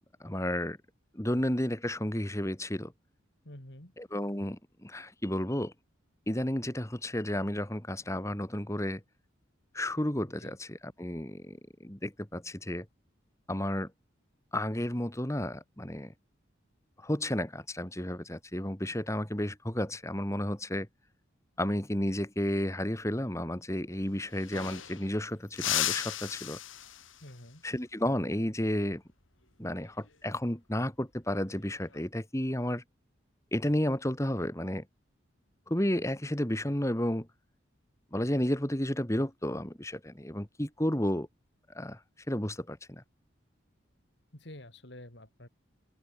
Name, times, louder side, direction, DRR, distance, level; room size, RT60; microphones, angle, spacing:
voice 1, 0.2-0.8 1.1-2.9 4.0-5.7 6.3-9.0 9.7-11.6 11.8-12.9 13.5-13.9 14.5-16.1 17.0-20.9 21.6-26.6 27.6-29.0 29.6-32.8 33.5-34.8 35.7-37.3 38.1-41.3 41.7-42.0 42.3-43.0, left 1 dB, 15° left, 2.1 m, -32 dB
voice 2, 3.4-3.9 10.4-10.5 27.2-27.6 44.3-45.5, left 1 dB, 60° left, 4.4 m, -48 dB
sound 1, 23.9-24.0 24.2-25.2 25.5-27.3 29.8-30.1 31.5-32.0, left 11 dB, 85° left, 3.4 m, -35 dB
open air
head